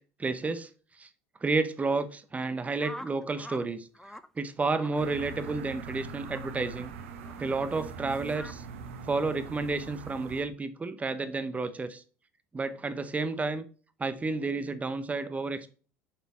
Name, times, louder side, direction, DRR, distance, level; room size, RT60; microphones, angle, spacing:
voice 1, 0.2-0.7 1.0-1.1 1.4-3.9 4.4-6.9 7.4-8.6 9.1-12.0 12.5-13.6 14.0-15.7, right 3 dB, 20° right, 0.8 m, -31 dB
sound 1, 2.8-3.7 3.9-4.3 4.7-5.0 5.4-5.6 6.2-6.5 7.2-7.4 8.3-8.5, equal, 5° left, 0.6 m, -44 dB
sound 2, 5.0-10.4, right 5 dB, 80° right, 0.9 m, -42 dB
7.1 x 4.3 x 4.1 m
hypercardioid pair, 75°, 7 cm